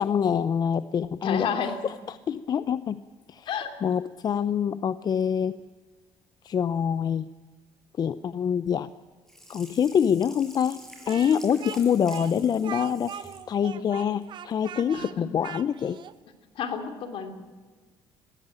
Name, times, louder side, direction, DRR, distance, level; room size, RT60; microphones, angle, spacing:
voice 1, 0.0-1.5 1.8-3.0 3.3-3.5 3.8-5.6 6.4-7.3 8.0-8.9 9.5-10.8 11.0-16.0, left 8 dB, 45° left, 15 dB, 0.6 m, -25 dB
voice 2, 1.2-1.8 3.5-3.7 14.9-15.3 16.6-17.3, left 7 dB, 65° left, 7 dB, 3.0 m, -30 dB
Sink (filling or washing), 9.3-13.5 13.9-14.0, equal, 5° left, 5.9 m, -48 dB
Speech, 11.1-16.2, right 9 dB, 55° right, 1.0 m, -40 dB
19.5 x 16.0 x 9.0 m, 1.4 s
cardioid pair, 100°, 10 cm